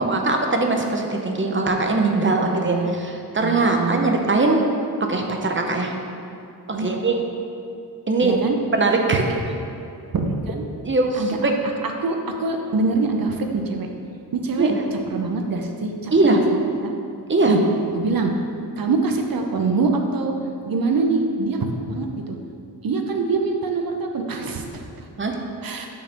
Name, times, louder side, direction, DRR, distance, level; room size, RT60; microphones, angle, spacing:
voice 1, 0.1-4.6 5.0-5.9 6.7-7.2 8.1-8.4 8.7-9.2 10.8-11.5 14.6-14.8 16.1-16.4 17.3-17.5 25.2-25.4, right 3 dB, 30° right, 2 dB, 0.8 m, -21 dB
voice 2, 2.4-2.9 3.4-4.1 6.7-6.9 8.2-8.6 9.2-9.3 10.1-10.6 11.2-11.5 12.0-13.9 14.4-16.5 17.4-17.6 17.9-18.3 18.8-20.3 20.7-22.4 22.8-24.8 25.6-25.9, right 3 dB, 55° right, 3 dB, 0.9 m, -24 dB
6.9 x 3.9 x 6.5 m, 2.5 s
cardioid pair, 85°, 40 cm